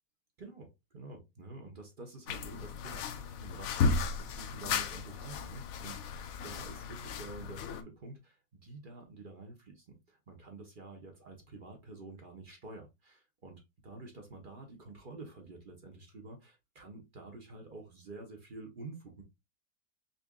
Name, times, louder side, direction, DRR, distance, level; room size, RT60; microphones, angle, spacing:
voice 1, 0.4-19.2, right 2 dB, 40° right, 0.7 m, -49 dB
sound 1, 2.3-7.8, left 5 dB, 70° left, 0.8 m, -35 dB
5.4 x 2.5 x 2.3 m
omnidirectional pair, 1.9 m